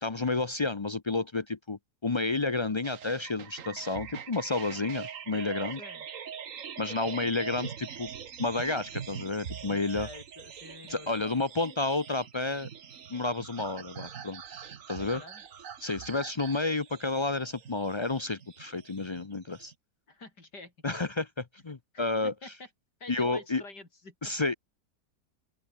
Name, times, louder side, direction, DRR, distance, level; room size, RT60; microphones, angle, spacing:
voice 1, 0.0-5.8 6.8-8.1 8.4-10.1 10.9-12.7 13.1-14.4 14.9-15.2 15.8-19.7 20.8-22.3 23.1-23.6 24.2-24.5, left 3 dB, 50° left, 0.3 m, -31 dB
sound 1, 2.8-19.7, right 8 dB, 55° right, 1.5 m, -43 dB
voice 2, 9.9-11.4 15.0-15.4 20.1-21.0 21.9-22.5 23.0-24.3, left 3 dB, 80° left, 5.9 m, -48 dB
open air
omnidirectional pair, 1.8 m